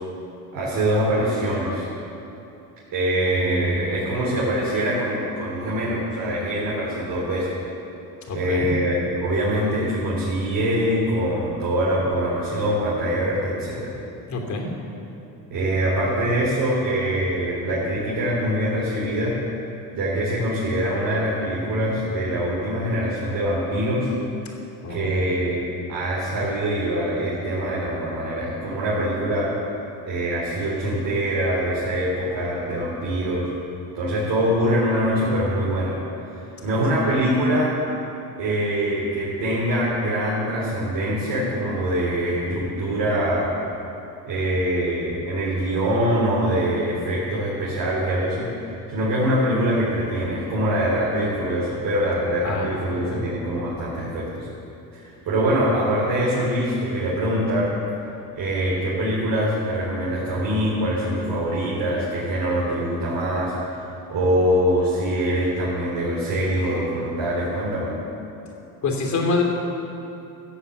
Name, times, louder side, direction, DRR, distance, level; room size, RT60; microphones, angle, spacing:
voice 1, 0.5-1.9 2.9-7.5 8.3-13.9 15.5-19.4 19.9-24.1 24.9-25.6 25.9-29.6 30.0-33.5 33.9-36.0 36.6-37.8 38.4-43.6 44.3-54.5 54.9-57.8 58.3-67.9, equal, 55° right, -7 dB, 4.0 m, -24 dB
voice 2, 8.3-8.7 14.3-14.7 24.8-25.2 52.4-52.7 53.1-53.2 68.8-69.4, left 3 dB, 45° left, 0 dB, 3.1 m, -26 dB
15.5 x 7.4 x 8.2 m, 2.8 s
cardioid pair, 110°, 40 cm